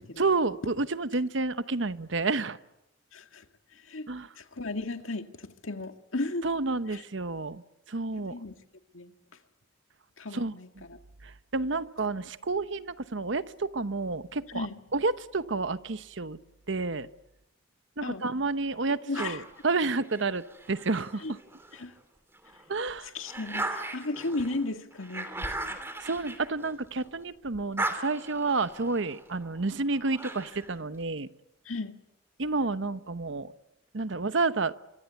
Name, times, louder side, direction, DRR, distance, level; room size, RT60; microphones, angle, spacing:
voice 1, 0.2-2.6 4.1-4.3 6.4-7.6 7.9-8.3 10.3-10.5 11.2-14.7 14.9-16.4 16.7-17.1 18.0-21.4 22.7-23.1 26.0-31.3 32.4-33.5 33.9-34.7, right 3 dB, 70° right, 13 dB, 1.0 m, -30 dB
voice 2, 3.1-3.5 3.7-4.1 4.4-6.5 6.9-7.0 8.2-8.5 8.9-9.1 10.2-11.0 14.5-14.8 18.0-18.2 19.1-19.4 21.2-21.3 21.7-21.9 23.1-25.8 31.7-32.0, left 2 dB, 90° left, 7 dB, 2.0 m, -35 dB
sound 1, 19.1-21.8 22.3-27.2 27.5-30.8, right 2 dB, 10° right, 3.0 m, -38 dB
25.5 x 24.5 x 8.3 m, 0.90 s
head